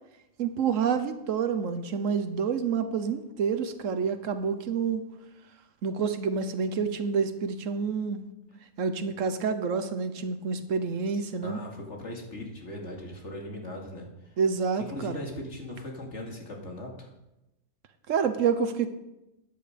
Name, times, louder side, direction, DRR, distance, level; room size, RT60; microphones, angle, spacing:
voice 1, 0.4-5.1 5.8-8.2 8.8-11.6 14.4-15.2 18.1-18.9, right 6 dB, 90° right, 10 dB, 1.3 m, -28 dB
voice 2, 11.2-14.4 14.7-17.1, left 1 dB, 65° left, 0 dB, 2.7 m, -39 dB
14.0 x 9.8 x 5.1 m, 0.93 s
omnidirectional pair, 1.3 m